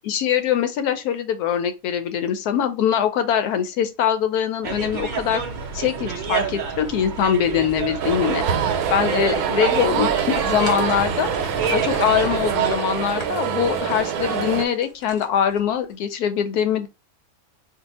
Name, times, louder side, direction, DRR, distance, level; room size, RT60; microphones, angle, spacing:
voice 1, 0.0-5.4 5.7-8.4 8.9-11.3 11.7-16.9, left 9 dB, 85° left, 1.1 m, -23 dB
sound 1, 4.6-12.7, right 6 dB, 75° right, 0.4 m, -28 dB
sound 2, 8.0-14.7, right 7 dB, 90° right, 1.1 m, -25 dB
sound 3, 9.8-15.9, left 2 dB, 40° left, 1.0 m, -40 dB
2.7 x 2.4 x 4.1 m
omnidirectional pair, 1.6 m